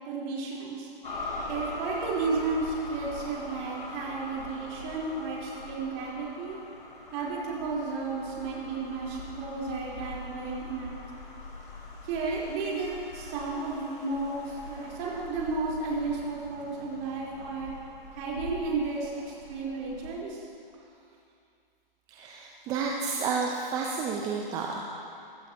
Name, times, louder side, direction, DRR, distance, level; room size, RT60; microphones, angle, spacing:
voice 1, 0.0-0.9 1.5-6.6 7.1-10.9 12.0-17.7 18.1-20.4, right 3 dB, 30° right, -5 dB, 3.9 m, -33 dB
sound 1, 1.0-20.1, left 2 dB, 60° left, 4.3 m, -42 dB
voice 2, 22.1-24.8, right 5 dB, 10° right, -1 dB, 0.6 m, -31 dB
23.5 x 14.5 x 2.9 m, 2.4 s
hypercardioid pair, 140°, 29 cm